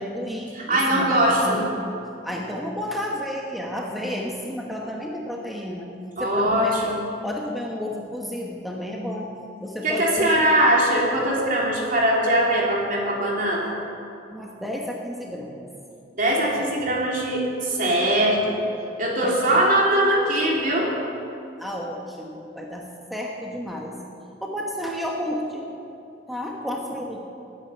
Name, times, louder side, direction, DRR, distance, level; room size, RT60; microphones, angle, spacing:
voice 1, 0.0-1.8 2.2-5.9 6.2-6.9 7.2-9.3 9.6-10.6 14.3-15.6 16.6-16.7 19.2-19.6 21.6-24.0 24.4-25.7 26.3-27.2, equal, ahead, -2 dB, 1.2 m, -31 dB
voice 2, 0.5-1.6 6.2-7.0 9.8-13.7 16.1-18.6 19.0-20.9, right 1 dB, 50° right, -3 dB, 3.4 m, -21 dB
20.0 x 9.7 x 5.7 m, 2.7 s
head